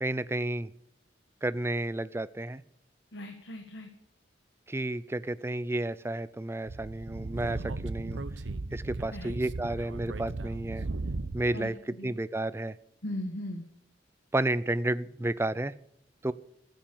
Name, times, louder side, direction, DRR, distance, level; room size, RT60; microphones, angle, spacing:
voice 1, 0.0-0.7 1.4-2.6 4.7-8.2 8.7-10.9 11.3-12.8 14.3-15.7 16.2-16.3, right 1 dB, 15° right, 17 dB, 0.5 m, -31 dB
voice 2, 3.1-3.9 9.1-9.3 11.5-11.7 12.0-12.1 13.0-13.6, left 1 dB, 70° left, 4 dB, 1.7 m, -38 dB
Speech / Wind, 6.7-11.6, right 2 dB, 80° right, 0.8 m, -36 dB
14.5 x 9.2 x 8.6 m, 0.75 s
head